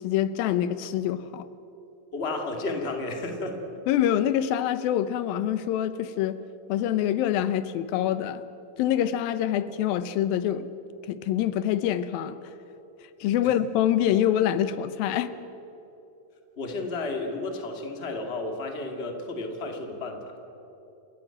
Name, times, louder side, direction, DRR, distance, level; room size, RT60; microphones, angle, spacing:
voice 1, 0.0-1.5 3.9-6.4 6.7-8.4 8.8-10.7 11.1-12.4 13.2-15.3, left 11 dB, 90° left, 13 dB, 2.7 m, -25 dB
voice 2, 2.1-3.6 16.6-20.4, left 2 dB, 20° left, 3 dB, 2.0 m, -32 dB
29.5 x 15.0 x 8.9 m, 3.0 s
omnidirectional pair, 4.0 m